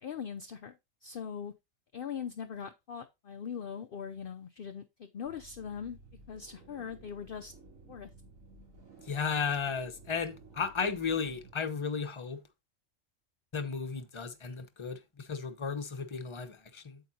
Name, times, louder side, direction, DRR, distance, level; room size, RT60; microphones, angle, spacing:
voice 1, 0.0-1.5 1.9-6.0 6.3-7.5 7.9-8.1, left 7 dB, 55° left, 0.7 m, -41 dB
sound 1, 5.2-11.5, right 2 dB, 80° right, 3.7 m, -55 dB
voice 2, 9.1-12.4 13.5-17.0, left 5 dB, 25° left, 0.9 m, -34 dB
8.8 x 7.7 x 2.8 m
omnidirectional pair, 1.4 m